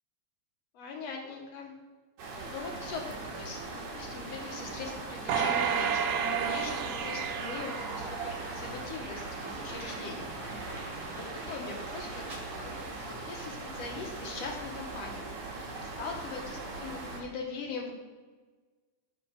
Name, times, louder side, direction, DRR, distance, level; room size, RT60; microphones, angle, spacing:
voice 1, 0.7-1.7 2.5-3.6 3.9-10.3 11.0-15.3 16.0-17.9, left 4 dB, 65° left, 0 dB, 2.2 m, -41 dB
sound 1, 2.2-17.2, right 3 dB, 65° right, 2.5 m, -40 dB
sound 2, 5.3-8.7 9.2-9.3, right 7 dB, 80° right, 1.4 m, -31 dB
sound 3, 5.8-13.6, right 2 dB, 45° right, 1.7 m, -48 dB
8.3 x 4.5 x 5.7 m, 1.4 s
omnidirectional pair, 3.4 m